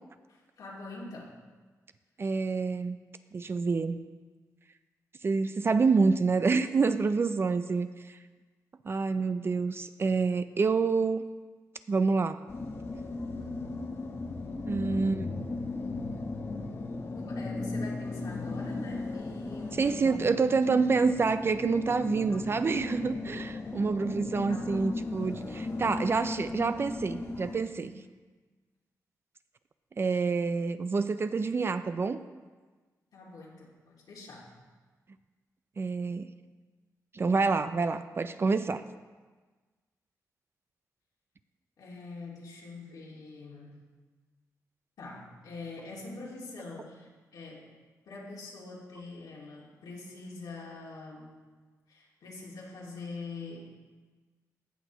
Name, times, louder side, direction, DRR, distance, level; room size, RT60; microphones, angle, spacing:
voice 1, 0.3-1.4 14.9-15.4 17.2-20.3 22.3-22.5 23.7-23.8 24.5-24.8 27.8-27.9 33.1-34.6 41.8-43.9 45.0-47.8 48.1-51.4 51.9-53.8, left 3 dB, 80° left, -4 dB, 2.2 m, -44 dB
voice 2, 2.2-3.0 3.3-4.0 5.2-8.2 8.8-11.2 11.9-12.4 14.7-15.3 19.8-27.9 30.0-32.2 35.8-36.3 37.1-38.8, right 4 dB, 40° right, 11 dB, 0.4 m, -27 dB
sound 1, 12.5-27.6, left 3 dB, 40° left, 0.9 m, -36 dB
16.5 x 6.1 x 3.0 m, 1.3 s
cardioid pair, 90°, 7 cm